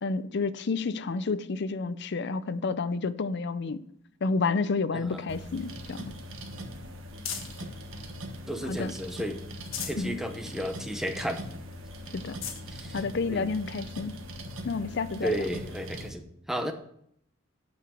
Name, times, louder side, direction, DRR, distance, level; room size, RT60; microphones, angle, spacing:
voice 1, 0.0-3.8 4.2-6.1 8.6-8.9 10.0-10.2 12.1-12.4 12.9-14.1 14.6-15.4, left 4 dB, 60° left, 0.5 m, -30 dB
voice 2, 4.9-5.2 7.3-7.4 8.5-9.4 9.8-11.4 12.7-13.0 13.3-13.6 15.2-16.7, equal, ahead, 0.9 m, -33 dB
sound 1, 5.1-7.7 8.2-9.0 9.4-10.1 10.6-10.7 11.0-11.1 11.7-11.8 12.2-12.7 13.5-13.6 15.4-15.5, left 7 dB, 90° left, 1.4 m, -41 dB
sound 2, 5.3-16.1, equal, 85° right, 1.3 m, -41 dB
8.7 x 5.9 x 6.2 m
head